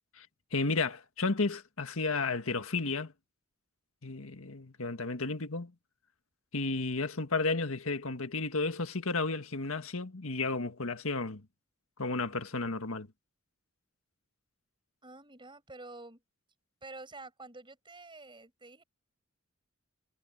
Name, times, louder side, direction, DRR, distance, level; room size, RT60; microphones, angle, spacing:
voice 1, 0.5-3.1 4.0-5.7 6.5-11.4 12.0-13.1, left 3 dB, 90° left, 1.7 m, -32 dB
voice 2, 15.0-16.2 16.8-18.8, right 2 dB, 25° right, 7.1 m, -48 dB
head